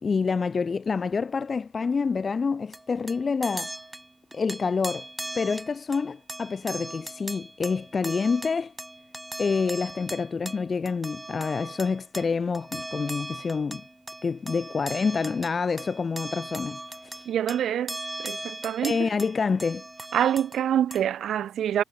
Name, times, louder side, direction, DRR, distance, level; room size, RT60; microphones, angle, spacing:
voice 1, 0.0-3.7 4.3-5.1 5.3-8.7 9.4-13.8 14.2-17.3 18.8-19.8, left 5 dB, 35° left, 1.0 m, -27 dB
sound 1, 2.7-20.6 20.9-21.1, right 1 dB, 10° right, 2.2 m, -39 dB
voice 2, 17.3-19.1 20.1-21.8, right 10 dB, 70° right, 0.6 m, -26 dB
cardioid pair, 90°, 0 cm